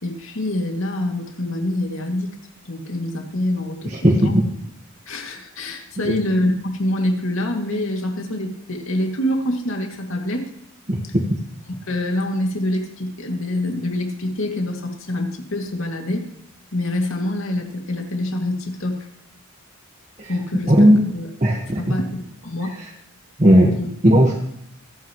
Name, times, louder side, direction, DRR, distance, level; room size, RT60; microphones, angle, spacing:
voice 1, 0.0-2.3 2.7-4.3 5.1-10.5 11.0-11.1 11.7-16.3 16.7-19.0 20.3-20.9 21.1-21.3 21.8-22.7 23.7-23.9, left 1 dB, 70° left, 2 dB, 2.3 m, -25 dB
voice 2, 10.9-11.2 20.7-21.0 21.4-21.8 23.4-23.7 24.0-24.3, equal, 35° right, -1 dB, 1.4 m, -14 dB
26.0 x 9.2 x 3.1 m, 0.72 s
head